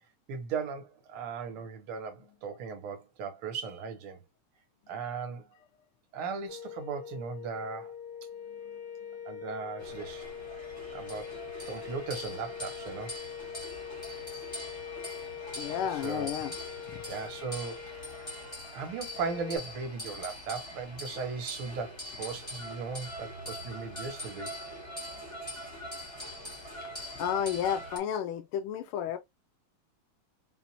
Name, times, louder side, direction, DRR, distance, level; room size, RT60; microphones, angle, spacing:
voice 1, 0.3-4.2 4.9-5.5 6.1-7.9 9.3-10.3 10.9-11.4 11.7-13.2 16.0-16.3 17.1-17.8 18.7-24.5, right 5 dB, 75° right, 1.8 m, -37 dB
sound 1, 6.5-19.6, left 8 dB, 35° left, 1.7 m, -43 dB
sound 2, 9.8-28.0, left 1 dB, 15° left, 1.3 m, -43 dB
voice 2, 15.5-16.5 16.9-17.0 26.8-29.2, left 9 dB, 80° left, 1.4 m, -32 dB
5.5 x 2.4 x 2.8 m
omnidirectional pair, 2.4 m